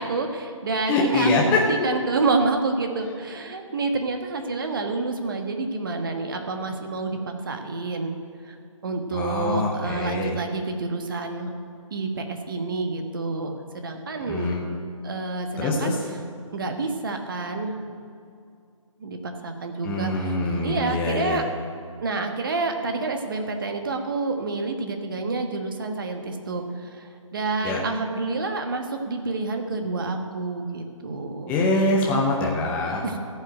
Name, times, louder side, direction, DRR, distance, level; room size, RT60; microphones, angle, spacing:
voice 1, 0.0-8.2 8.4-8.6 8.8-11.5 11.9-14.5 15.0-15.9 16.5-17.8 19.0-20.3 20.6-21.4 22.0-31.5 33.0-33.2, right 3 dB, 40° right, 5 dB, 1.3 m, -28 dB
voice 2, 0.9-1.6 9.1-10.3 14.3-14.7 15.6-15.9 19.8-21.4 27.6-27.8 31.5-33.1, left 2 dB, 10° left, -2 dB, 0.7 m, -24 dB
14.0 x 5.7 x 9.0 m, 2.3 s
figure-of-eight pair, 145°, 17 cm